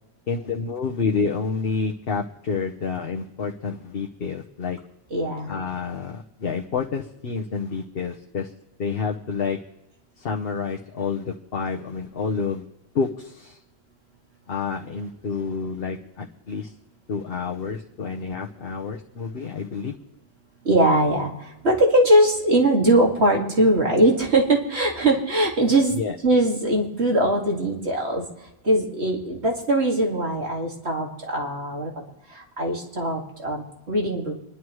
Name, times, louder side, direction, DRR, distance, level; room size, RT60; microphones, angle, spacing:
voice 1, 0.3-4.8 5.5-8.5 8.8-9.6 10.2-12.7 12.9-13.6 14.5-16.7 17.1-19.9 25.9-26.1, left 5 dB, 65° left, 1 dB, 1.1 m, -29 dB
voice 2, 5.1-5.5 20.6-21.3 21.6-25.9 26.2-28.2 28.6-31.9 32.3-34.3, right 1 dB, 85° right, 0 dB, 2.6 m, -21 dB
27.0 x 11.0 x 3.1 m, 0.96 s
omnidirectional pair, 1.1 m